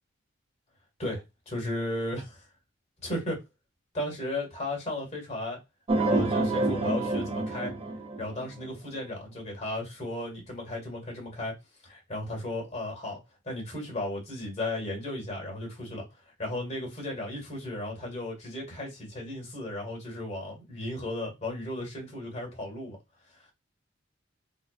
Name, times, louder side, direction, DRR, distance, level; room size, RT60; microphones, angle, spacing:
voice 1, 1.0-2.5 3.0-3.4 3.9-5.6 6.0-7.7 8.2-11.5 11.8-13.2 13.5-16.1 16.4-23.0, left 1 dB, 35° left, 1.8 m, -35 dB
sound 1, 5.9-8.7, right 2 dB, 30° right, 0.5 m, -27 dB
3.8 x 3.1 x 2.4 m
head